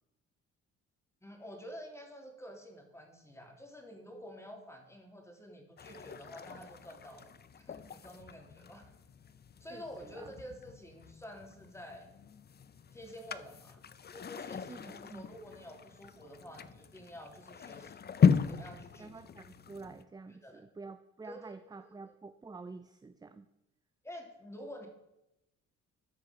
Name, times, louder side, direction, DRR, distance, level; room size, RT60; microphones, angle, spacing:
voice 1, 1.2-7.3 7.6-8.9 9.6-12.1 12.9-13.8 14.1-18.2 18.5-19.1 20.3-20.6 21.3-21.6 21.8-21.9 24.0-24.9, equal, 10° left, 3 dB, 2.5 m, -49 dB
sound 1, 5.8-20.0, left 7 dB, 35° left, 0.6 m, -36 dB
voice 2, 9.7-10.3 14.7-15.2 19.0-23.4, right 4 dB, 15° right, 10 dB, 0.5 m, -49 dB
13.0 x 4.9 x 5.7 m, 0.91 s
cardioid pair, 90°, 30 cm